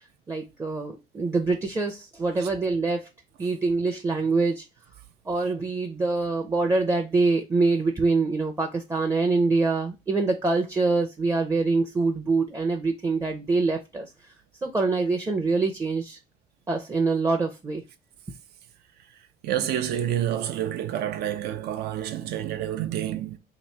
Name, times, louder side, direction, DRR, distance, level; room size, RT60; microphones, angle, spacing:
voice 1, 0.3-3.1 3.4-4.6 5.3-14.1 14.6-16.2 16.7-17.8, right 3 dB, 20° right, 0.6 m, -25 dB
voice 2, 19.4-23.4, right 11 dB, 75° right, 0.6 m, -28 dB
3.0 x 2.7 x 4.4 m
cardioid pair, 110°, 17 cm